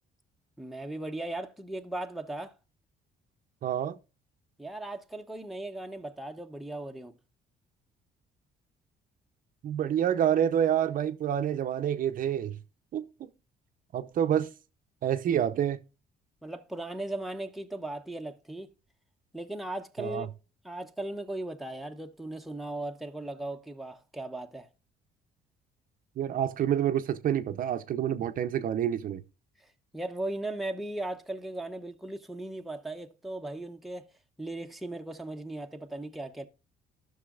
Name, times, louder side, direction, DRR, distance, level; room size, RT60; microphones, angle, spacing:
voice 1, 0.6-2.6 4.6-7.1 16.4-18.7 19.3-20.3 20.6-24.7 29.6-34.1 34.4-36.5, right 1 dB, ahead, 0.9 m, -37 dB
voice 2, 3.6-4.0 9.6-12.6 12.9-13.3 13.9-14.5 15.0-15.8 20.0-20.3 26.2-29.2, right 10 dB, 55° right, 0.7 m, -28 dB
13.0 x 6.2 x 2.4 m
cardioid pair, 110°, 17 cm